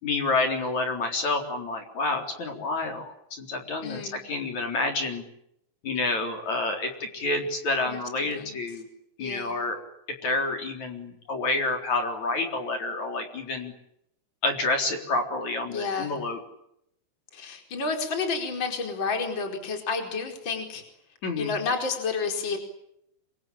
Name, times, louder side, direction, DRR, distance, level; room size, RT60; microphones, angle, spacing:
voice 1, 0.0-5.2 5.8-8.8 9.2-9.8 10.2-13.7 14.4-16.4 21.2-21.5, left 3 dB, 45° left, 4 dB, 5.0 m, -28 dB
voice 2, 3.8-4.2 7.9-8.6 9.2-9.5 15.7-16.2 17.3-20.8 21.4-22.6, left 4 dB, 25° left, 4 dB, 5.0 m, -30 dB
27.0 x 25.0 x 8.8 m, 0.77 s
omnidirectional pair, 4.9 m